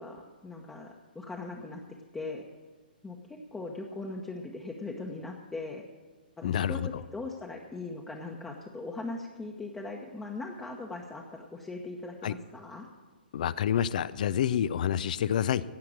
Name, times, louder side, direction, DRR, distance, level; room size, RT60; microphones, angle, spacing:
voice 1, 0.0-1.8 2.1-2.4 3.0-5.8 6.4-12.9, left 3 dB, 10° left, -1 dB, 1.0 m, -40 dB
voice 2, 6.4-6.9 12.2-12.3 13.3-15.6, left 9 dB, 50° left, 18 dB, 0.5 m, -28 dB
16.5 x 5.8 x 8.8 m, 1.3 s
figure-of-eight pair, 125°, 5 cm